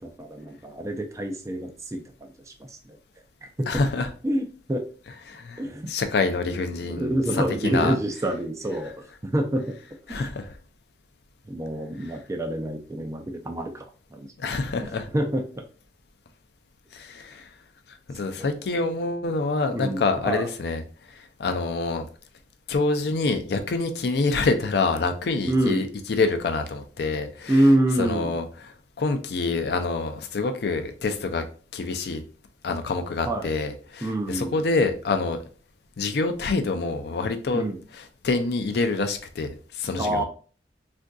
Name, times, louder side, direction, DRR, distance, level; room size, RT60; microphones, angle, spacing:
voice 1, 0.0-3.0 3.6-3.7 4.2-4.8 5.6-5.9 6.8-9.7 10.1-10.3 11.5-15.6 18.3-18.6 19.7-20.5 25.5-25.8 27.5-28.4 33.3-33.5 34.0-34.6 37.5-37.8 40.0-40.2, right 1 dB, 15° right, 0.3 m, -27 dB
voice 2, 3.7-4.1 5.3-5.6 5.9-7.1 7.6-8.0 10.1-10.5 14.4-15.1 16.9-17.5 18.1-20.8 21.4-22.1 22.7-27.5 28.0-28.5 29.0-31.4 31.7-32.2 32.6-35.4 36.0-37.6 38.2-40.2, left 3 dB, 60° left, 0.4 m, -26 dB
3.6 x 2.5 x 2.2 m
head